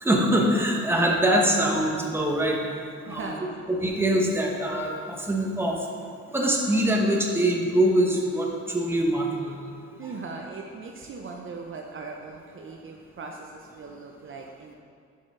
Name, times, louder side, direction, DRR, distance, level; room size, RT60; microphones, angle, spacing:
voice 1, 0.0-2.6 3.1-3.2 3.7-5.8 6.3-9.6, right 1 dB, 10° right, -1 dB, 1.1 m, -23 dB
voice 2, 3.1-3.6 10.0-14.7, right 4 dB, 45° right, 1 dB, 0.6 m, -39 dB
7.4 x 6.1 x 3.7 m, 2.3 s
cardioid pair, 90°, 30 cm